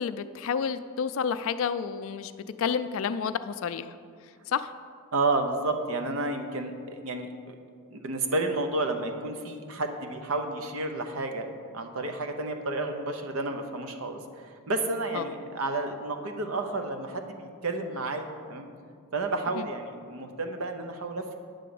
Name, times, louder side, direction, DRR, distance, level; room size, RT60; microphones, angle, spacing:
voice 1, 0.0-2.3 2.6-3.9 4.5-4.7 15.1-15.3 19.5-19.7, left 6 dB, 65° left, 12 dB, 0.3 m, -30 dB
voice 2, 5.1-7.5 7.9-18.7 19.1-21.3, right 2 dB, 70° right, 6 dB, 0.7 m, -31 dB
9.1 x 3.8 x 6.9 m, 2.2 s
head